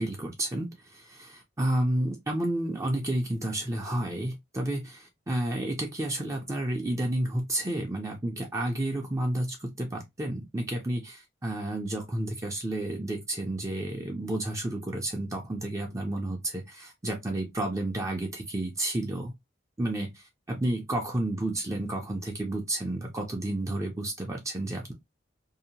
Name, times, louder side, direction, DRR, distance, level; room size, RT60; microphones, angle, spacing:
voice 1, 0.0-19.3 19.8-24.9, right 1 dB, 15° right, 0.5 m, -31 dB
2.7 x 2.1 x 2.6 m
head